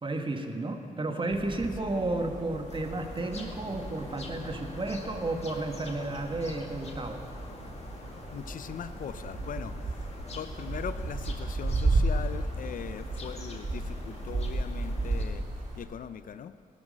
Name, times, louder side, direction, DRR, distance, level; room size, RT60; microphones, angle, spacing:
voice 1, 0.0-7.2, right 2 dB, 35° right, 5 dB, 1.5 m, -32 dB
sound 1, 1.3-15.8, right 2 dB, 60° right, 3.2 m, -34 dB
sound 2, 2.7-15.2, left 3 dB, 50° left, 1.9 m, -45 dB
voice 2, 8.3-15.4 15.8-16.5, left 8 dB, 70° left, 13 dB, 0.6 m, -40 dB
16.0 x 12.5 x 6.4 m, 2.6 s
cardioid pair, 70°, 14 cm